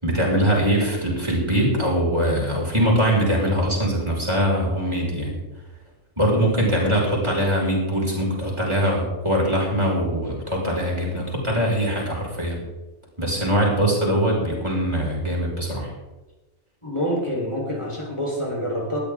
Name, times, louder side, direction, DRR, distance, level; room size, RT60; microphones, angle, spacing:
voice 1, 0.0-5.4 6.2-12.6 13.2-15.9, equal, 20° right, -3 dB, 6.0 m, -22 dB
voice 2, 16.8-19.0, equal, 20° left, -2 dB, 4.2 m, -27 dB
20.0 x 14.0 x 3.7 m, 1.1 s
omnidirectional pair, 1.4 m